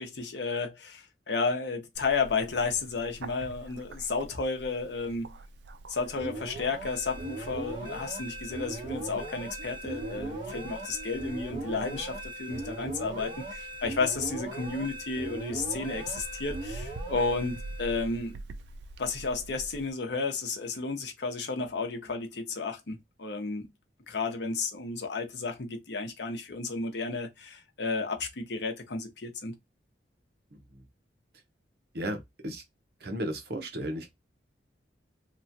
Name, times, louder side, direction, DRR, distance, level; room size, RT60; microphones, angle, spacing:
voice 1, 0.0-5.3 5.9-18.3 19.0-23.7 24.1-29.5, left 4 dB, 75° left, 0.8 m, -32 dB
Bird, 1.9-19.9, right 2 dB, 75° right, 0.4 m, -46 dB
sound 1, 6.2-18.3, right 2 dB, 30° right, 1.3 m, -39 dB
voice 2, 31.9-32.6 33.0-34.1, right 1 dB, 60° right, 0.8 m, -34 dB
3.0 x 2.3 x 2.7 m
head